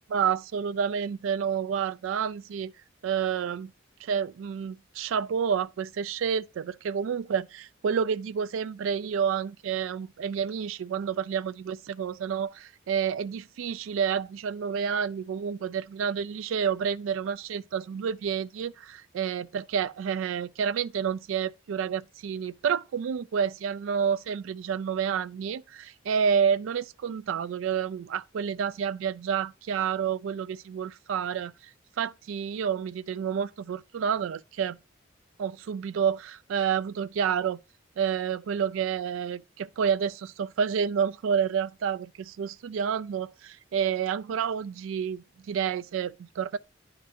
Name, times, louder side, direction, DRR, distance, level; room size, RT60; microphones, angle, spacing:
voice 1, 0.1-2.7 3.0-3.7 4.0-31.5 32.0-34.8 35.4-37.6 38.0-46.6, right 7 dB, 80° right, 0.3 m, -29 dB
10.0 x 3.8 x 2.6 m
head